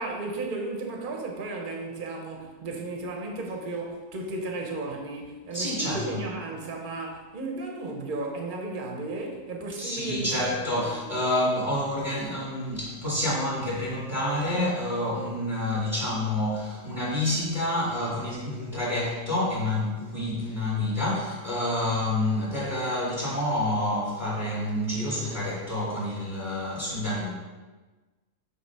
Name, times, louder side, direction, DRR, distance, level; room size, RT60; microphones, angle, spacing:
voice 1, 0.0-11.1, right 2 dB, 40° right, 2 dB, 0.9 m, -34 dB
voice 2, 5.5-6.2 9.8-27.3, left 1 dB, 30° left, -8 dB, 1.8 m, -28 dB
7.4 x 3.3 x 4.7 m, 1.2 s
omnidirectional pair, 1.7 m